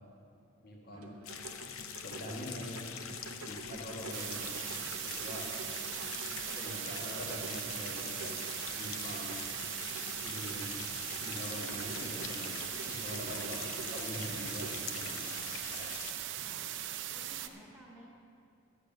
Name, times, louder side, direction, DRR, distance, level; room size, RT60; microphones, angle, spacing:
voice 1, 0.6-1.2 2.0-4.7 5.0-5.5 6.6-8.3 8.8-9.5 10.2-10.8 11.2-15.9, equal, 45° left, -1 dB, 1.5 m, -44 dB
sound 1, 0.9-15.2, right 3 dB, 80° right, 0.9 m, -49 dB
sound 2, 1.2-16.1, left 7 dB, 70° left, 0.7 m, -44 dB
sound 3, 4.1-17.5, right 11 dB, 60° right, 0.6 m, -40 dB
voice 2, 5.6-6.2 13.3-13.7 16.3-16.8 17.1-18.0, equal, 5° left, -6 dB, 1.7 m, -55 dB
12.5 x 8.2 x 6.7 m, 2.5 s
head